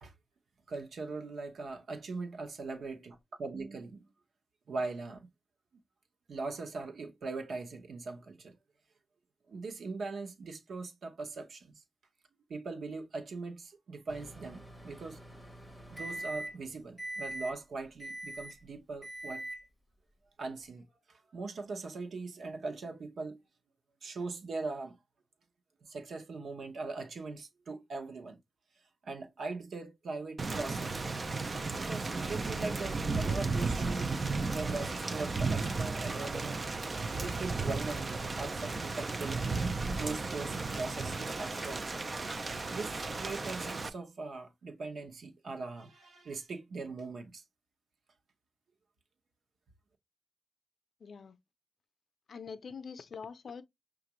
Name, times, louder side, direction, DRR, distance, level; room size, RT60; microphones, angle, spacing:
voice 1, 0.7-4.0 4.7-5.3 6.3-8.6 9.5-11.8 12.5-15.2 15.9-19.5 20.4-23.4 24.0-25.0 25.8-28.4 29.0-31.1 31.8-34.1 34.4-39.4 40.0-42.0 42.7-47.4, right 3 dB, 80° right, 0.8 m, -40 dB
Microwave oven, 14.1-16.7 17.0-17.5 18.0-18.6 19.0-19.6, right 1 dB, 5° right, 1.3 m, -42 dB
Thunder / Rain, 30.4-43.9, right 3 dB, 35° right, 0.4 m, -34 dB
voice 2, 51.0-51.4 52.3-53.6, left 5 dB, 60° left, 0.4 m, -44 dB
5.8 x 2.4 x 2.9 m
wide cardioid pair, 160°, 0 cm